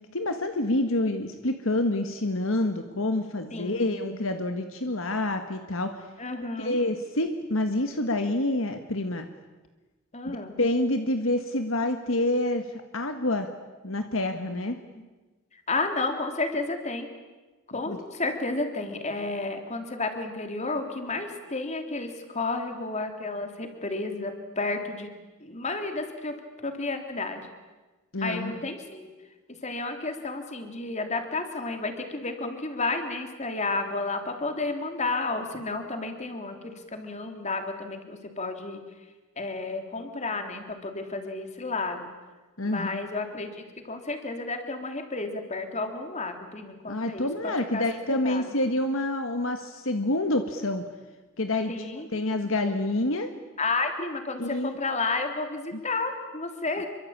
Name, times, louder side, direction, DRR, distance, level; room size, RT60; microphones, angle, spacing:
voice 1, 0.1-6.0 6.6-9.3 10.2-12.6 12.9-13.5 13.8-14.8 17.9-18.0 28.1-28.6 42.6-43.0 46.9-50.8 51.4-51.7 52.1-53.3 54.4-54.8 55.7-55.8, left 1 dB, 65° left, 7 dB, 1.7 m, -27 dB
voice 2, 3.5-3.9 6.2-6.8 10.1-10.6 15.7-17.1 17.7-25.1 25.4-26.3 26.6-27.5 28.2-29.1 29.6-38.8 39.4-42.1 42.6-48.4 51.7-52.1 53.6-56.9, left 3 dB, 30° left, 6 dB, 3.3 m, -32 dB
27.5 x 24.0 x 8.9 m, 1.2 s
head